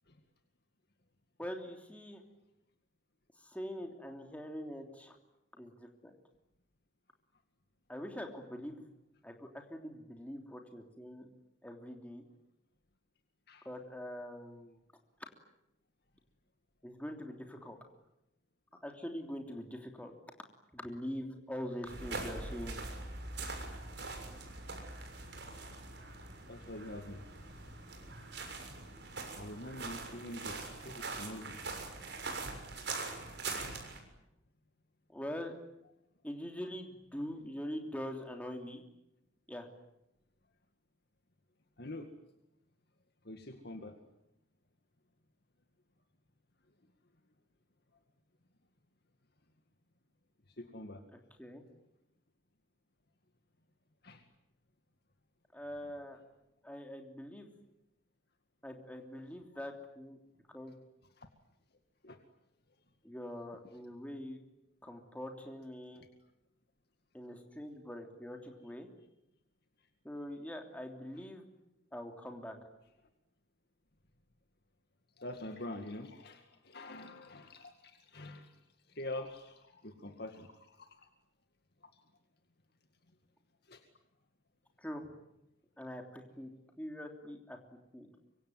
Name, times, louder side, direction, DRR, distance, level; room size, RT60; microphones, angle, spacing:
voice 1, 1.4-2.2 3.4-5.2 5.5-6.1 7.9-8.9 9.2-11.3 11.6-12.2 13.6-14.8 16.8-17.8 18.8-20.1 20.7-22.8 35.1-35.6 36.2-38.8 39.5-39.7 51.4-51.6 55.5-56.2 56.6-57.5 58.6-60.2 60.5-60.7 63.0-64.4 64.8-66.0 67.1-68.9 70.0-71.4 71.9-72.6 84.8-85.1 85.8-86.5 86.8-87.6 87.9-88.1, equal, 5° left, 3 dB, 3.2 m, -43 dB
sound 1, 21.8-34.0, right 3 dB, 60° right, 6.7 m, -43 dB
voice 2, 26.5-27.2 29.3-31.6 41.8-42.1 43.2-44.0 50.5-51.1 54.0-54.3 61.2-61.3 62.0-62.2 75.2-78.6 78.9-81.1 81.9-82.0 83.6-83.8, left 1 dB, 55° left, 6 dB, 2.1 m, -45 dB
25.0 x 24.5 x 9.5 m, 0.85 s
head